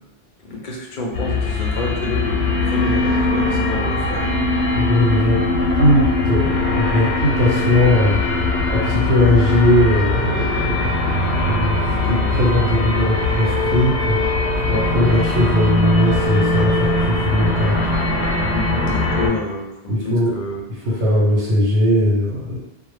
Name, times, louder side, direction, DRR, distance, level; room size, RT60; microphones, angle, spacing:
voice 1, 0.4-4.3 14.7-15.0 18.5-20.6, left 2 dB, 55° left, -2 dB, 0.6 m, -29 dB
sound 1, 1.1-19.3, left 2 dB, 85° left, 0.9 m, -20 dB
voice 2, 4.7-5.4 5.8-8.2 8.7-10.8 11.5-14.4 14.7-17.8 19.9-20.3 21.0-22.6, left 1 dB, 80° right, -6 dB, 0.9 m, -19 dB
2.0 x 2.0 x 3.2 m, 0.90 s
omnidirectional pair, 1.1 m